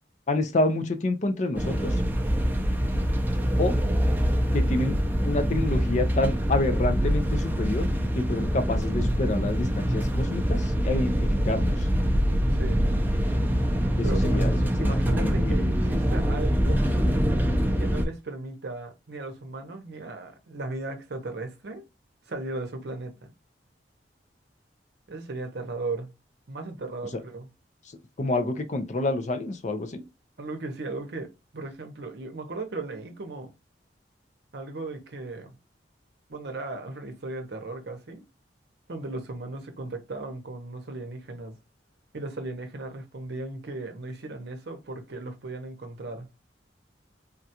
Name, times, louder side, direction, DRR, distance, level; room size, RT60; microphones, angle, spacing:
voice 1, 0.3-1.9 3.6-3.8 4.5-5.0 5.3-7.9 8.2-11.8 14.0-14.5 14.8-15.6 28.2-30.1, left 2 dB, 40° left, 0.5 m, -28 dB
sound 1, 1.5-18.0, equal, 10° right, 0.5 m, -24 dB
voice 2, 12.5-12.9 14.0-14.5 14.8-16.8 17.8-21.9 22.3-23.3 25.1-26.1 26.5-27.5 30.4-33.5 34.5-35.6 36.3-38.2 38.9-41.6 42.1-46.3, right 2 dB, 65° right, 0.7 m, -36 dB
3.6 x 2.3 x 2.7 m
head